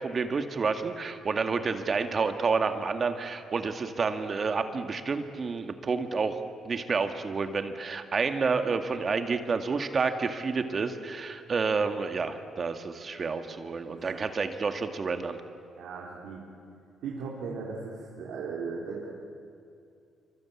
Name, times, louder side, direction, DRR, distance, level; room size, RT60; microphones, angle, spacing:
voice 1, 0.0-6.4 6.7-15.4, right 4 dB, 40° right, 7 dB, 2.0 m, -29 dB
voice 2, 13.6-14.3 15.8-16.4 17.0-19.1, right 5 dB, 85° right, -4 dB, 3.8 m, -38 dB
27.0 x 25.5 x 8.6 m, 2.5 s
cardioid pair, 90°, 0 cm